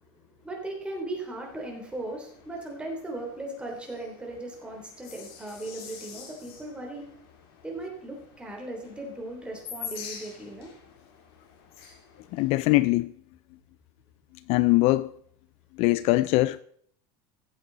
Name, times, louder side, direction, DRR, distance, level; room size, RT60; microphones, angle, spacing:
voice 1, 0.4-7.0 7.6-10.7, right 2 dB, 10° right, 3.3 m, -37 dB
sound 1, 1.4-12.7, left 7 dB, 85° left, 3.1 m, -47 dB
voice 2, 12.3-13.1 14.5-15.1 15.8-16.6, left 19 dB, 55° left, 0.4 m, -22 dB
15.0 x 8.0 x 4.0 m
supercardioid pair, 135°, 12 cm